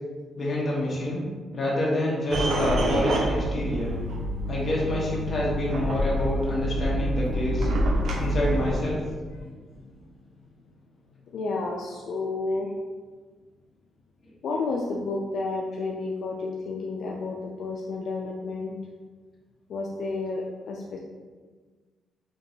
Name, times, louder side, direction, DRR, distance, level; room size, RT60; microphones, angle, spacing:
voice 1, 0.3-1.2 1.5-4.0 4.5-7.7 8.2-9.0, left 1 dB, 30° left, -6 dB, 1.0 m, -27 dB
sound 1, 2.3-8.8, equal, 65° right, 0.6 m, -27 dB
voice 2, 7.9-8.4 9.3-10.3 11.3-12.7 14.4-18.8 19.7-21.0, left 3 dB, 60° left, -2 dB, 0.3 m, -32 dB
4.4 x 2.9 x 2.6 m, 1.5 s
cardioid pair, 165°, 0 cm